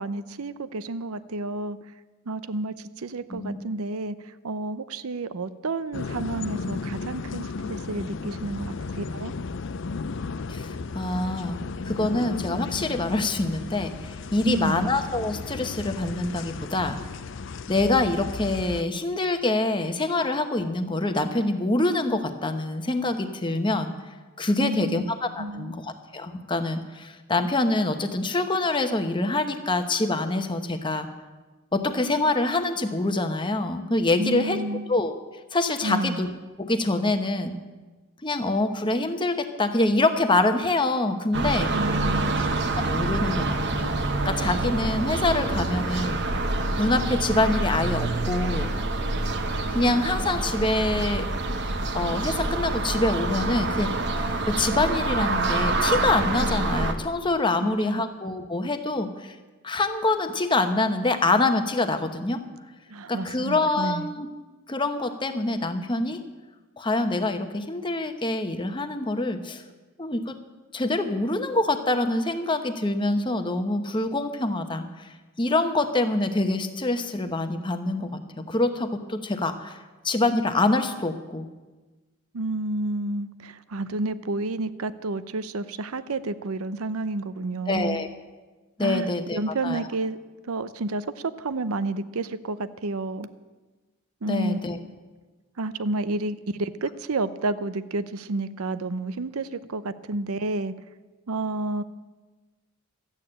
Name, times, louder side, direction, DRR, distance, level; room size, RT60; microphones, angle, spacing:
voice 1, 0.0-1.8 2.3-9.3 14.4-14.9 24.6-25.0 25.4-25.7 34.2-34.9 35.8-36.2 41.7-42.5 57.6-58.1 62.9-64.1 82.3-88.0 88.8-90.2 90.4-93.3 94.2-94.6 95.6-100.7 101.3-101.8, right 2 dB, 80° right, 14 dB, 0.6 m, -30 dB
sound 1, 5.9-18.8, left 4 dB, 55° left, 0.5 m, -34 dB
voice 2, 10.5-11.6 11.8-17.0 17.7-23.9 24.4-31.1 31.7-34.6 34.9-35.1 35.5-36.3 36.6-37.5 38.2-41.7 42.8-43.9 44.2-46.2 46.8-48.7 49.7-51.3 51.9-53.9 54.2-59.3 59.6-62.4 63.1-64.3 64.7-66.2 66.8-69.6 70.0-70.4 70.7-79.8 80.0-81.5 87.7-88.1 88.8-89.8 94.3-94.8, left 2 dB, 20° left, 8 dB, 0.9 m, -25 dB
sound 2, 41.3-56.9, right 2 dB, 50° right, 1.1 m, -26 dB
13.5 x 8.9 x 8.7 m, 1.3 s
head